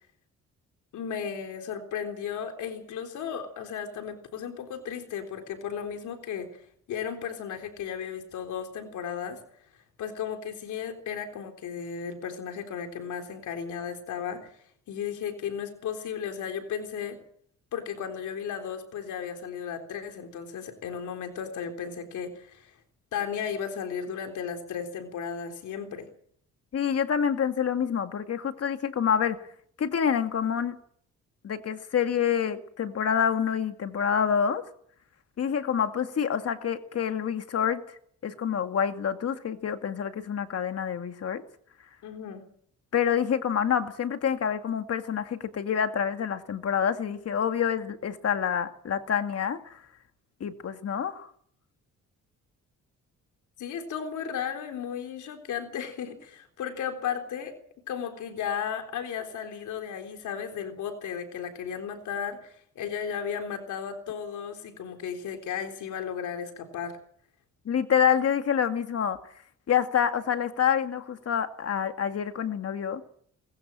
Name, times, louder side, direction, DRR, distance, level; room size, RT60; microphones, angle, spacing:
voice 1, 0.9-6.6 6.9-9.4 10.0-17.2 17.7-22.8 23.1-26.1 42.0-42.5 53.6-57.6 57.9-67.0, left 7 dB, 75° left, 5 dB, 3.8 m, -35 dB
voice 2, 26.7-29.4 29.8-30.8 31.4-34.6 35.4-38.0 38.2-41.4 42.9-49.8 50.4-51.3 67.7-69.2 69.7-73.0, left 8 dB, 55° left, 8 dB, 2.2 m, -27 dB
22.0 x 21.0 x 7.5 m, 0.64 s
cardioid pair, 90°, 30 cm